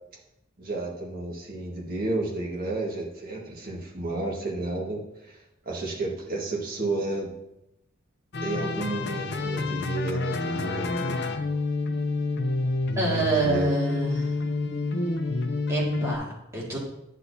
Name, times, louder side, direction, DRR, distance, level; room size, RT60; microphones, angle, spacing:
voice 1, 0.6-5.4 5.6-7.3 8.4-11.2 13.1-13.7, right 2 dB, 45° right, -1 dB, 1.5 m, -32 dB
sound 1, 8.3-16.2, left 3 dB, 50° left, 0.6 m, -28 dB
voice 2, 13.0-14.3 15.7-16.8, right 3 dB, 15° right, -5 dB, 2.0 m, -27 dB
9.9 x 6.4 x 2.7 m, 0.85 s
head